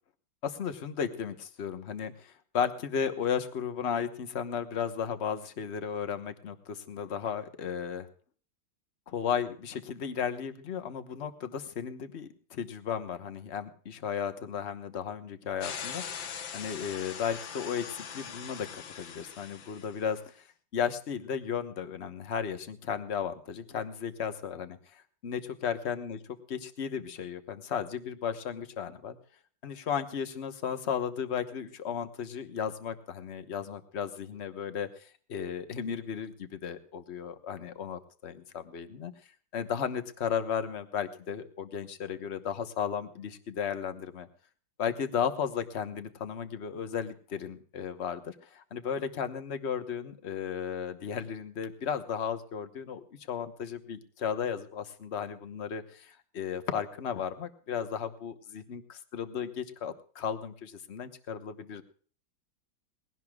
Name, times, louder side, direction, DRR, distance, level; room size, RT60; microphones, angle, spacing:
voice 1, 0.4-8.1 9.1-16.3 16.5-20.2 20.7-26.2 26.5-29.2 29.6-39.1 39.5-44.3 44.8-61.8, left 7 dB, 40° left, 9 dB, 1.2 m, -35 dB
sound 1, 15.6-20.0, left 7 dB, 75° left, 1.9 m, -41 dB
21.0 x 17.0 x 2.4 m, 0.44 s
omnidirectional pair, 2.1 m